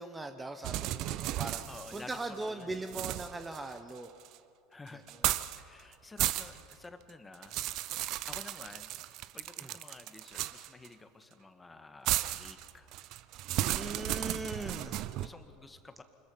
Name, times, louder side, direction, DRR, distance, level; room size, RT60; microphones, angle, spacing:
voice 1, 0.0-1.6 1.9-4.1 9.6-9.7 13.6-15.0, right 2 dB, 15° right, 8 dB, 1.1 m, -40 dB
sound 1, 0.6-2.4 2.9-4.4 5.1-5.6 5.9-6.7 7.1-10.9 12.1-15.3, right 14 dB, 50° right, 0.7 m, -35 dB
voice 2, 1.7-2.9 4.7-5.0 5.6-7.6 8.3-8.9 9.3-13.0 14.4-16.0, left 3 dB, 15° left, 8 dB, 1.8 m, -51 dB
26.0 x 21.0 x 5.7 m, 2.6 s
figure-of-eight pair, 75°, 0 cm